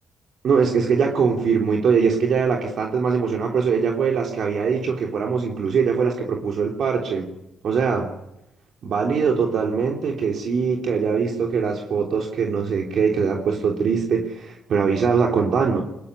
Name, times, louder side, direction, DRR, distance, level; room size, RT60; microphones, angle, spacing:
voice 1, 0.4-7.3 7.6-8.1 8.8-15.8, right 5 dB, 60° right, 1 dB, 3.4 m, -22 dB
21.5 x 21.5 x 9.9 m, 0.86 s
cardioid pair, 90°, 0 cm